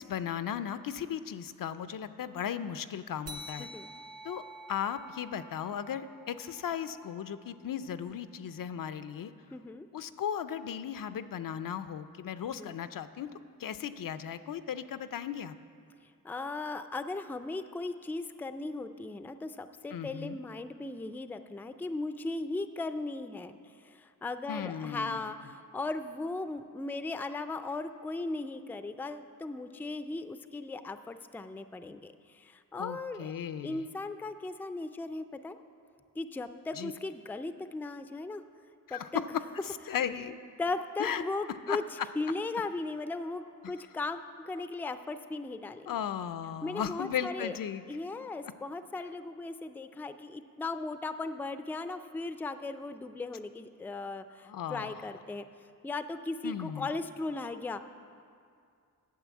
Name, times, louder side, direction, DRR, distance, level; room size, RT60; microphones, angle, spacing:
voice 1, 0.0-3.7 4.2-4.4 4.7-9.3 9.9-13.3 13.6-15.6 19.9-20.4 24.5-25.3 32.8-33.9 36.8-36.9 38.9-39.1 39.6-40.4 41.0-41.2 41.7-41.8 45.9-47.8 54.5-55.1 56.4-56.9, left 8 dB, 75° left, 12 dB, 0.5 m, -36 dB
sound 1, 3.3-8.2, equal, 45° right, 0.8 m, -49 dB
voice 2, 3.6-3.9 9.5-9.9 12.5-12.7 16.2-23.6 23.8-33.3 33.6-35.6 36.2-38.4 38.9-39.2 40.6-41.8 42.1-45.9 46.6-47.6 47.9-55.4 55.8-57.8, left 3 dB, 5° left, 10 dB, 0.3 m, -37 dB
9.4 x 6.9 x 8.2 m, 2.3 s
wide cardioid pair, 105°, 34 cm